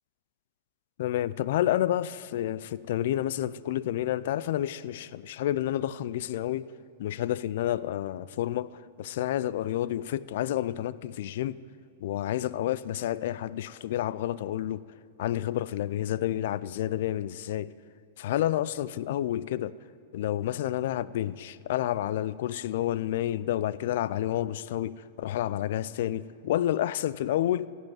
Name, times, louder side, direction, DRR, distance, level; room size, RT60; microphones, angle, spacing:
voice 1, 1.0-6.7 7.0-8.7 9.0-11.6 12.0-14.8 15.2-17.7 18.2-19.7 20.1-27.7, left 12 dB, 65° left, 0.4 m, -29 dB
15.5 x 5.5 x 8.9 m
hypercardioid pair, 120°, 0 cm